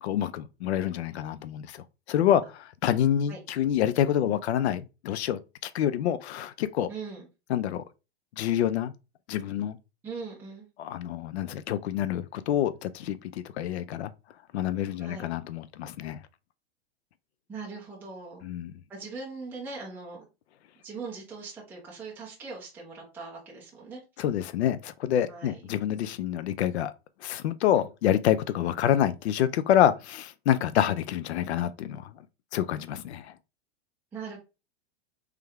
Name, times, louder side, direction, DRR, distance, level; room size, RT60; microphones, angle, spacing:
voice 1, 0.0-6.9 7.5-7.8 8.4-8.9 9.3-9.8 10.8-14.1 14.5-16.2 18.4-18.7 24.2-26.9 27.2-32.1 32.5-33.3, left 10 dB, 85° left, 0.5 m, -27 dB
voice 2, 6.9-7.3 10.0-10.7 15.0-15.3 17.5-18.4 18.9-20.2 20.8-24.0 25.3-25.6 27.7-27.9 34.1-34.4, right 4 dB, 5° right, 0.7 m, -40 dB
3.4 x 3.3 x 3.4 m
supercardioid pair, 155°, 32 cm